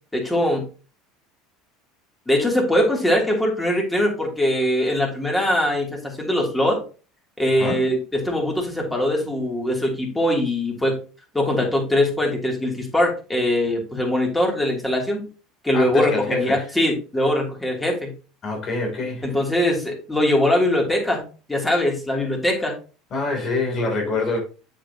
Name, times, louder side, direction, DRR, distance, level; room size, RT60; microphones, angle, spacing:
voice 1, 0.1-0.6 2.3-6.8 7.4-11.0 11.3-15.2 15.6-16.1 16.4-18.1 19.2-22.8, left 1 dB, 10° left, 3.0 m, -22 dB
voice 2, 15.7-16.7 18.4-19.3 23.1-24.4, left 3 dB, 45° left, 3.2 m, -25 dB
7.4 x 6.7 x 2.9 m
hypercardioid pair, 90°, 0 cm